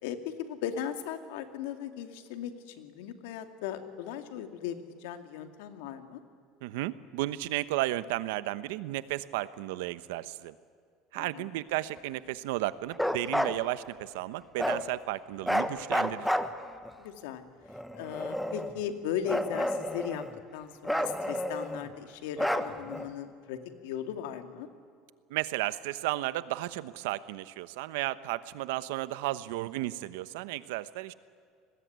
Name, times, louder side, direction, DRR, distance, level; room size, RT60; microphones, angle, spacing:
voice 1, 0.0-6.2 11.1-11.5 17.0-17.4 17.9-20.2 20.5-24.7, left 9 dB, 85° left, 7 dB, 2.4 m, -37 dB
voice 2, 6.6-10.5 11.1-16.3 25.3-31.1, right 16 dB, 90° right, 14 dB, 1.1 m, -33 dB
Bark, 12.9-13.6 14.6-14.8 15.4-16.9 17.7-18.8 19.3-20.4 20.8-21.9 22.4-23.1, equal, ahead, 1.1 m, -30 dB
30.0 x 20.5 x 9.5 m, 2.1 s
cardioid pair, 155°, 0 cm